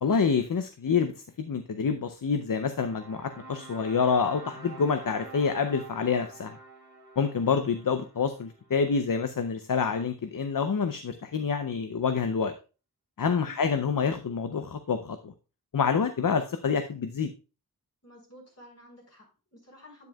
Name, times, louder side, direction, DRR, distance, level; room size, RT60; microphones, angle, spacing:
voice 1, 0.0-1.1 1.4-6.6 7.2-12.5 13.2-15.3 15.7-17.3, left 5 dB, 60° left, 9 dB, 0.6 m, -27 dB
sound 1, 2.7-8.9, right 3 dB, 80° right, 2.1 m, -47 dB
voice 2, 13.3-13.6 18.0-20.1, left 1 dB, 40° left, -1 dB, 4.4 m, -52 dB
9.3 x 7.7 x 2.3 m, 0.33 s
wide cardioid pair, 45°, 38 cm